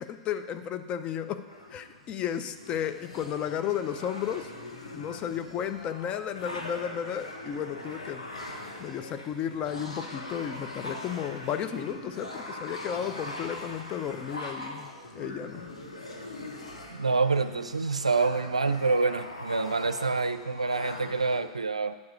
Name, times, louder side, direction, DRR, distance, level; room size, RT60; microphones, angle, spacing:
voice 1, 0.0-1.4 1.7-4.5 4.9-8.2 8.8-15.7, left 9 dB, 35° left, 9 dB, 0.6 m, -33 dB
sound 1, 1.5-21.4, left 1 dB, 90° left, 1.2 m, -42 dB
voice 2, 16.9-22.0, right 4 dB, 90° right, 11 dB, 0.4 m, -27 dB
9.4 x 4.8 x 6.4 m, 1.3 s
figure-of-eight pair, 100°, 3 cm